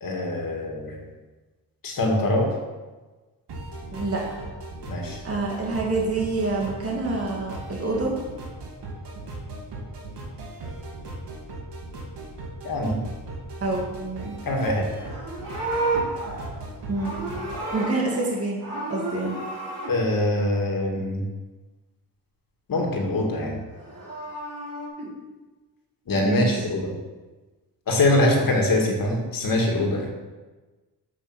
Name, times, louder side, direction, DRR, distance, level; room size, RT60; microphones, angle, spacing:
voice 1, 0.0-1.0 1.8-2.5 4.9-5.2 12.6-13.0 14.5-14.9 19.9-21.2 22.7-23.6 26.1-26.9 27.9-30.1, left 1 dB, 55° left, 1 dB, 2.2 m, -23 dB
sound 1, 3.5-17.7, right 2 dB, 85° right, 2.3 m, -38 dB
voice 2, 3.9-4.4 5.2-8.1 13.6-14.3 16.9-17.1 17.7-18.6 18.9-19.4 25.0-25.1 26.2-26.6, right 3 dB, 35° right, -2 dB, 2.2 m, -27 dB
Livestock farm animals working animals, 14.9-18.3 18.6-19.9 23.7-24.9, right 2 dB, 50° right, 3.7 m, -31 dB
7.9 x 7.6 x 6.3 m, 1.2 s
wide cardioid pair, 120°, 40 cm